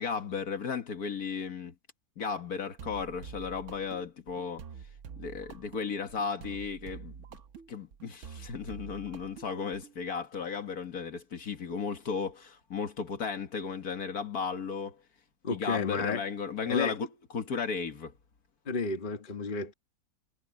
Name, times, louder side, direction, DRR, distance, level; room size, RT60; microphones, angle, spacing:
voice 1, 0.0-1.7 2.2-4.6 5.2-7.2 7.7-15.0 15.5-17.1 17.3-18.1, left 5 dB, 70° left, 2.1 m, -35 dB
sound 1, 2.8-10.0, right 6 dB, 55° right, 1.1 m, -47 dB
voice 2, 15.4-16.2 16.7-16.9 18.6-19.7, left 4 dB, 35° left, 1.5 m, -31 dB
omnidirectional pair, 1.7 m